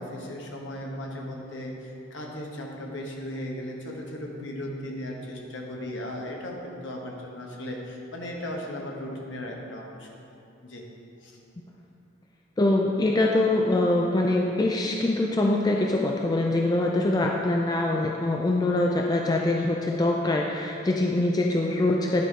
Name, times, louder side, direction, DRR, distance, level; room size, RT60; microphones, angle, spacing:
voice 1, 0.0-10.2 10.6-10.8 11.2-11.4, left 1 dB, 65° left, -1 dB, 1.1 m, -36 dB
voice 2, 12.6-22.3, left 2 dB, 20° left, 0 dB, 0.3 m, -24 dB
10.0 x 4.1 x 4.5 m, 2.7 s
head